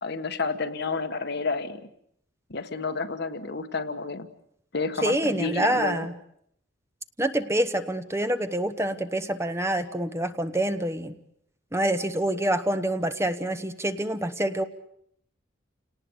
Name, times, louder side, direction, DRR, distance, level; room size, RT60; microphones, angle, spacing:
voice 1, 0.0-1.8 2.5-4.3 4.7-6.0, left 4 dB, 55° left, 8 dB, 1.5 m, -30 dB
voice 2, 5.0-6.1 7.2-11.1 11.7-14.6, right 1 dB, 15° right, 9 dB, 1.1 m, -26 dB
29.5 x 19.0 x 8.1 m, 0.73 s
head